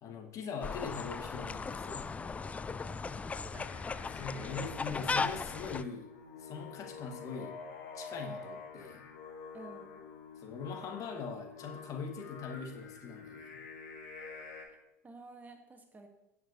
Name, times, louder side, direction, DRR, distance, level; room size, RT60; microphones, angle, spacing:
voice 1, 0.0-2.3 4.1-6.1 6.4-7.7 7.9-9.1 10.4-13.6, left 5 dB, 40° left, 3 dB, 1.7 m, -42 dB
sound 1, 0.6-5.8, left 4 dB, 15° left, 0.4 m, -37 dB
voice 2, 2.8-3.7 9.5-9.9 14.7-14.8 15.0-16.1, right 3 dB, 20° right, 5 dB, 1.5 m, -52 dB
Singing, 3.3-14.7, left 5 dB, 60° left, 2.6 m, -48 dB
16.5 x 7.7 x 2.9 m, 0.91 s
figure-of-eight pair, 75°, 9 cm